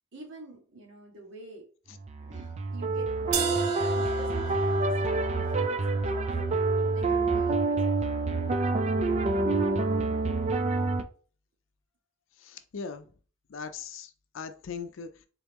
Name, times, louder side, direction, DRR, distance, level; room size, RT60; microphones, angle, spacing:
voice 1, 0.1-1.7 2.2-5.8 6.1-6.6 6.9-8.2, right 2 dB, 70° right, 1 dB, 1.4 m, -47 dB
sound 1, 2.0-11.0, right 3 dB, 35° right, 0.3 m, -27 dB
sound 2, 3.3-9.3, right 4 dB, 90° right, 0.8 m, -38 dB
voice 2, 12.4-13.1 13.5-15.3, left 5 dB, 75° left, 10 dB, 0.5 m, -40 dB
3.8 x 3.1 x 3.4 m, 0.40 s
head